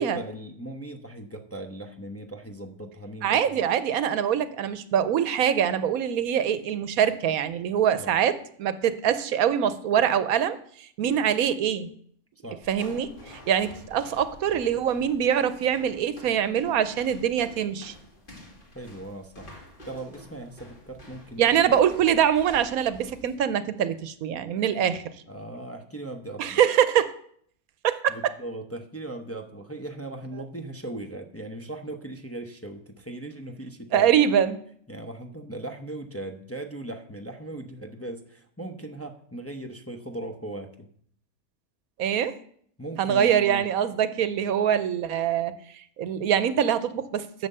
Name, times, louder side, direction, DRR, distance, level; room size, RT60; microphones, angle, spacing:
voice 1, 0.0-3.6 7.9-8.2 12.4-12.6 18.7-19.5 19.9-21.5 25.3-26.6 28.1-34.1 34.9-40.9 42.8-43.7, right 1 dB, 15° left, 4 dB, 0.7 m, -38 dB
voice 2, 3.2-11.9 12.7-13.1 13.5-17.9 21.4-25.0 26.4-27.1 27.8-28.1 33.9-34.6 42.0-42.4 43.0-47.5, right 9 dB, 85° right, 13 dB, 1.2 m, -24 dB
sound 1, 12.6-23.4, left 1 dB, 35° left, 2.3 m, -49 dB
11.0 x 6.7 x 6.7 m, 0.62 s
omnidirectional pair, 1.5 m